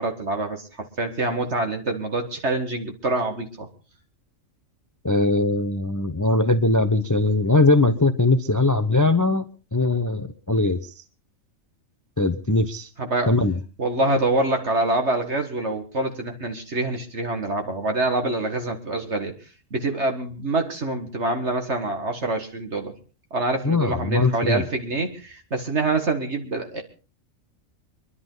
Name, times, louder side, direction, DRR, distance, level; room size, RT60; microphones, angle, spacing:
voice 1, 0.0-3.7 13.0-13.3 13.8-19.3 19.7-23.0 23.3-26.8, right 2 dB, 55° right, 5 dB, 2.1 m, -26 dB
voice 2, 5.0-9.4 9.7-10.8 12.2-12.9 13.3-13.5 23.6-24.6, left 2 dB, 20° left, 11 dB, 0.5 m, -20 dB
25.0 x 11.5 x 4.0 m, 0.35 s
omnidirectional pair, 1.4 m